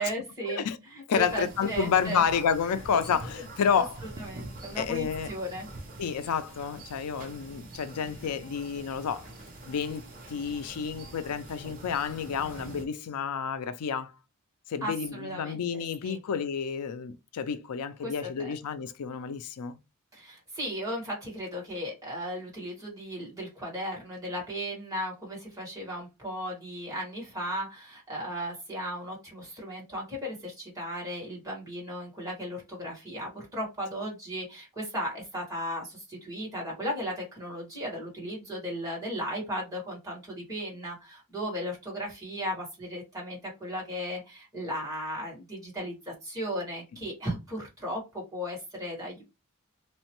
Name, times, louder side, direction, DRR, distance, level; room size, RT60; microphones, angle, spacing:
voice 1, 0.0-0.6 0.9-2.2 3.8-3.9 4.2-5.7 14.8-16.2 18.0-18.1 18.4-18.5 20.1-49.2, equal, 15° right, 1.7 m, -36 dB
voice 2, 1.1-4.0 4.8-5.3 6.0-9.3 9.7-10.0 10.3-14.1 14.7-19.8, left 7 dB, 90° left, 0.4 m, -30 dB
sound 1, 1.1-12.9, right 2 dB, 40° right, 0.7 m, -45 dB
3.0 x 2.1 x 2.9 m
head